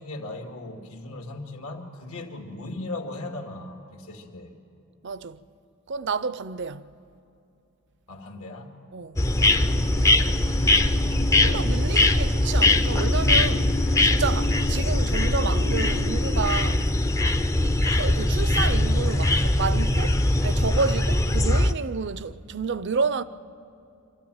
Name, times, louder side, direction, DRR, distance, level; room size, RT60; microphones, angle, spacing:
voice 1, 0.0-4.5 8.1-8.8 11.4-11.7, left 2 dB, 80° left, 2.2 m, -38 dB
voice 2, 5.0-5.4 5.9-6.9 8.9-9.2 11.3-16.9 17.9-23.2, right 5 dB, 55° right, 0.5 m, -30 dB
sound 1, 9.2-21.7, left 1 dB, 15° left, 0.5 m, -21 dB
26.5 x 13.5 x 8.9 m
head